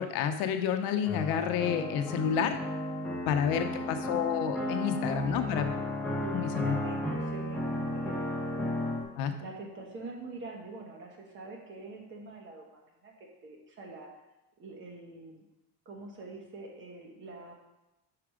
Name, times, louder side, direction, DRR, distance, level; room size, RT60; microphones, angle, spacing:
voice 1, 0.0-2.6 3.3-5.7 6.3-6.7 9.2-9.3, left 8 dB, 80° left, 7 dB, 0.8 m, -30 dB
sound 1, 1.1-9.0, left 1 dB, 5° left, 1.0 m, -34 dB
voice 2, 3.6-3.9 5.1-5.6 6.2-8.6 9.4-12.6 13.0-14.1 14.6-15.4 15.8-17.5, right 3 dB, 35° right, 1 dB, 1.2 m, -45 dB
5.9 x 4.9 x 4.9 m, 0.96 s
cardioid pair, 160°, 35 cm